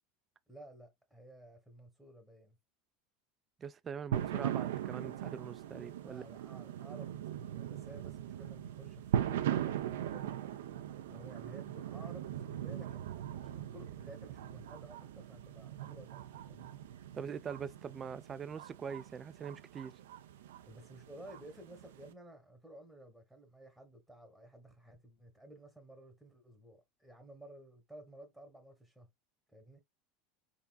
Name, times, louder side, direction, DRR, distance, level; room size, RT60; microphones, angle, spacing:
voice 1, 0.5-2.6 6.0-13.1 13.4-16.7 20.7-29.1 29.5-29.8, right 1 dB, ahead, 1.1 m, -54 dB
voice 2, 3.6-6.2 17.1-20.0, right 7 dB, 30° right, 0.4 m, -43 dB
sound 1, 4.1-22.1, right 11 dB, 90° right, 0.5 m, -40 dB
3.7 x 3.6 x 2.3 m
supercardioid pair, 115°, 0 cm